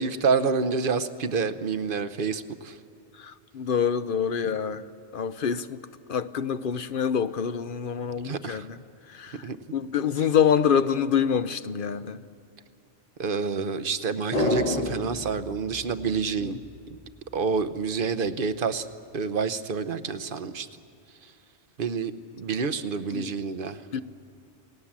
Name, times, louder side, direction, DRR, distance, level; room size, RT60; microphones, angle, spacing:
voice 1, 0.0-2.8 8.2-8.7 9.3-9.6 13.2-16.6 17.3-18.9 19.1-20.7 21.8-23.8, right 5 dB, 55° right, 1.0 m, -28 dB
voice 2, 3.2-4.8 5.1-5.8 6.1-8.8 9.1-12.2 16.4-16.6 23.1-23.3 23.9-24.0, left 7 dB, 55° left, 0.8 m, -26 dB
sound 1, 14.3-16.8 17.1-17.2, left 2 dB, 35° left, 1.1 m, -29 dB
28.5 x 18.5 x 7.4 m
omnidirectional pair, 1.1 m